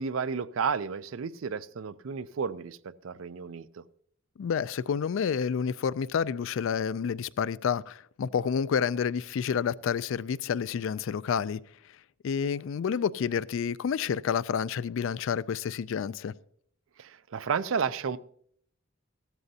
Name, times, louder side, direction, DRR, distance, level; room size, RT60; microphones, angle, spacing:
voice 1, 0.0-3.8 17.0-18.2, right 6 dB, 70° right, 0.5 m, -32 dB
voice 2, 4.4-11.6 12.2-16.3, left 7 dB, 70° left, 0.4 m, -29 dB
15.5 x 13.0 x 2.8 m
head